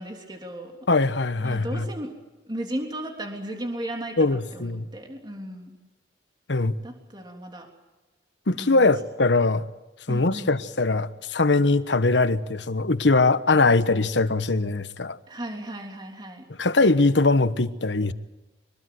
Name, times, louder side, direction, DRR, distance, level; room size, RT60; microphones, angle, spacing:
voice 1, 0.0-0.8 1.4-2.1 2.5-5.8 6.8-7.7 8.6-8.9 10.1-10.6 15.3-16.4, right 1 dB, 25° right, 3.4 m, -35 dB
voice 2, 0.9-1.8 4.2-4.9 6.5-6.7 8.5-9.6 10.1-15.2 16.6-18.1, left 3 dB, 90° left, 1.2 m, -21 dB
24.5 x 21.0 x 7.9 m
head